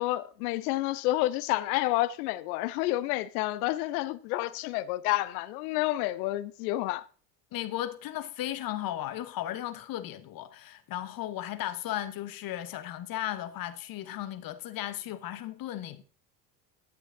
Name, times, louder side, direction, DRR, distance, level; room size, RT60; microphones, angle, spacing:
voice 1, 0.0-7.0, left 17 dB, 60° left, 0.8 m, -29 dB
voice 2, 7.5-16.0, left 13 dB, 45° left, 1.2 m, -35 dB
11.5 x 8.9 x 3.8 m
hypercardioid pair, 70°, 49 cm